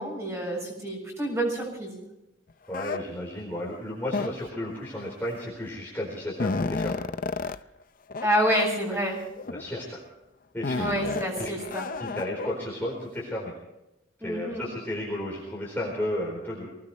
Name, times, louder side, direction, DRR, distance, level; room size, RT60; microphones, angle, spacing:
voice 1, 0.0-2.0 8.2-9.2 10.7-11.9 14.2-14.6, equal, 15° right, -2 dB, 6.9 m, -28 dB
sound 1, 2.7-3.0 4.1-4.6 5.6-5.7 6.0-7.6 8.1-8.3 8.5-8.6 9.4-9.8 10.6-12.5, left 3 dB, 45° left, 0.5 m, -31 dB
voice 2, 2.7-7.0 7.3-7.6 9.5-10.0 10.5-10.9 11.4-11.5 12.0-13.5 14.2-16.7, left 1 dB, 10° left, -4 dB, 4.1 m, -33 dB
24.0 x 18.5 x 3.2 m, 0.93 s
head